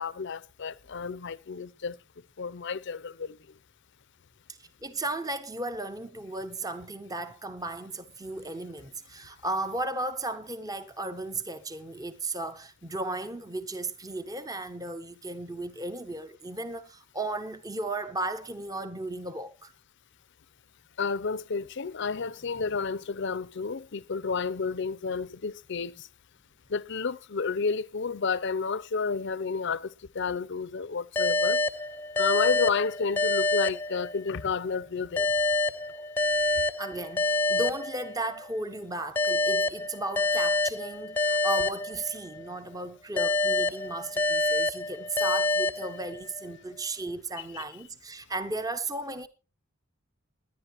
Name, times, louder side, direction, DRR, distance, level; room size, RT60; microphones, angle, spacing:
voice 1, 0.0-2.0 2.4-3.4 21.0-26.1 26.7-31.6 32.2-35.3 47.4-47.6, left 5 dB, 55° left, 0.6 m, -31 dB
voice 2, 4.5-19.7 36.4-49.3, right 2 dB, 15° right, 0.8 m, -35 dB
sound 1, 31.2-34.5 35.2-38.5 39.2-42.5 43.2-46.5, left 2 dB, 10° left, 0.7 m, -27 dB
20.0 x 10.5 x 3.0 m
head